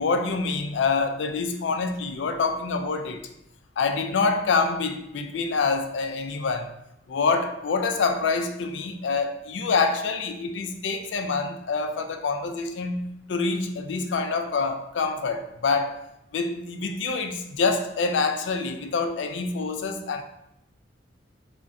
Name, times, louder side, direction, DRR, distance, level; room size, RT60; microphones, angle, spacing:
voice 1, 0.0-3.2 3.8-6.7 7.1-16.0 16.3-20.2, left 4 dB, 70° left, 6 dB, 0.4 m, -26 dB
4.9 x 2.2 x 2.6 m, 0.81 s
head